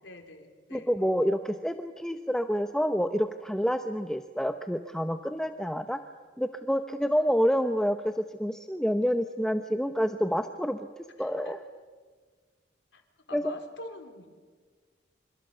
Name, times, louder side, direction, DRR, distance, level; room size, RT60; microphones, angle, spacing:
voice 1, 0.0-0.9 11.2-11.6 12.9-13.0 13.3-14.3, left 2 dB, 80° left, 4 dB, 3.8 m, -45 dB
voice 2, 0.7-6.0 6.4-10.9 11.2-11.6 13.3-13.4, equal, 5° left, 7 dB, 0.7 m, -28 dB
27.5 x 26.0 x 6.8 m, 1.5 s
head